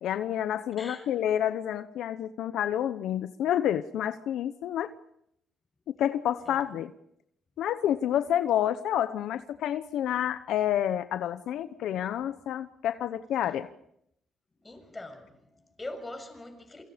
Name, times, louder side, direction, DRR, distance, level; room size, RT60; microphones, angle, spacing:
voice 1, 0.0-4.9 6.0-6.9 7.6-13.7, left 10 dB, 80° left, 0.9 m, -29 dB
voice 2, 0.8-1.1 6.4-6.6 14.6-16.8, left 2 dB, 20° left, 6.7 m, -43 dB
28.0 x 25.0 x 5.2 m
cardioid pair, 90°, 0 cm